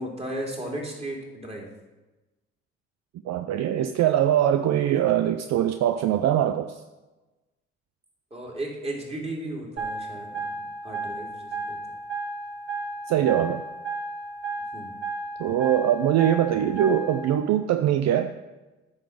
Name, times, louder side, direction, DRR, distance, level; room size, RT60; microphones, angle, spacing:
voice 1, 0.0-1.7 8.3-11.8 14.7-14.9, right 1 dB, 20° right, -1 dB, 3.2 m, -35 dB
voice 2, 3.3-6.8 13.1-13.6 15.4-18.3, right 10 dB, 60° right, 8 dB, 0.6 m, -22 dB
sound 1, 9.8-17.4, right 3 dB, 40° right, 3.6 m, -34 dB
9.7 x 4.1 x 7.2 m, 1.1 s
hypercardioid pair, 60°, 30 cm